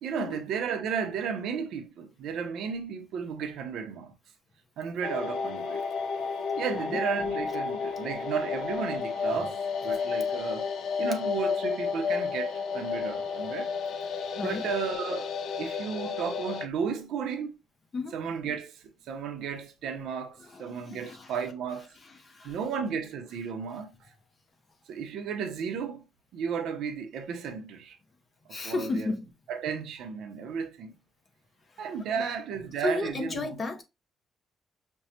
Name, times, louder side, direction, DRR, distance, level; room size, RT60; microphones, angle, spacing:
voice 1, 0.0-4.1 4.8-5.8 6.6-10.7 11.0-13.7 14.4-15.3 15.6-17.5 18.1-21.9 22.4-23.9 24.9-26.0 26.3-28.0 28.6-29.1 29.5-30.9 31.8-33.6, right 6 dB, 80° right, 0.8 m, -33 dB
sound 1, 5.0-16.7, left 5 dB, 70° left, 0.7 m, -32 dB
voice 2, 14.4-14.7 17.9-18.2 20.4-21.3 22.0-22.6 28.5-29.2 31.7-31.8 32.1-32.3 32.8-33.8, left 3 dB, 30° left, 0.8 m, -34 dB
5.3 x 2.3 x 2.8 m
cardioid pair, 140°, 0 cm